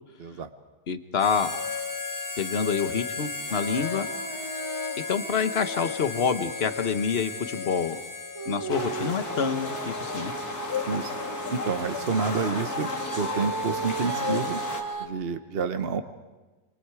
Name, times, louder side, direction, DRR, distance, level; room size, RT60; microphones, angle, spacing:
voice 1, 0.9-1.5 2.4-4.1 5.1-8.0 8.5-10.3, left 6 dB, 40° left, 10 dB, 1.1 m, -27 dB
Harmonica, 1.2-9.2, left 4 dB, 15° left, 0.7 m, -35 dB
Female singing, 3.4-7.1 8.3-15.1, right 4 dB, 20° right, 1.5 m, -37 dB
sound 1, 8.7-14.8, left 4 dB, 60° left, 2.7 m, -33 dB
voice 2, 10.9-11.2 11.5-12.9 13.2-14.6 15.0-16.0, right 5 dB, 45° right, 9 dB, 0.9 m, -29 dB
28.5 x 25.5 x 4.8 m, 1.2 s
omnidirectional pair, 1.9 m